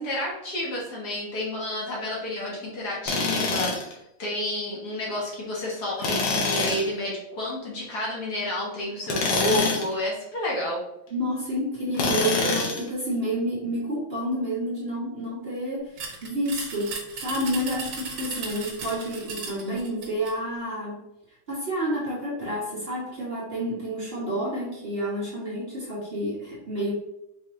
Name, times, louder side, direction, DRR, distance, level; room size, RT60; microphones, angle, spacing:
voice 1, 0.0-10.8 26.8-26.9, left 1 dB, 55° left, -4 dB, 1.6 m, -30 dB
Tools, 3.1-3.9 6.0-6.9 9.0-9.9 11.9-12.9, left 3 dB, 75° left, 1.6 m, -25 dB
voice 2, 11.1-21.0 21.5-26.9, equal, 35° right, -8 dB, 1.6 m, -29 dB
sound 1, 16.0-20.4, right 4 dB, 85° right, 1.8 m, -36 dB
5.3 x 3.4 x 2.7 m, 0.85 s
omnidirectional pair, 2.1 m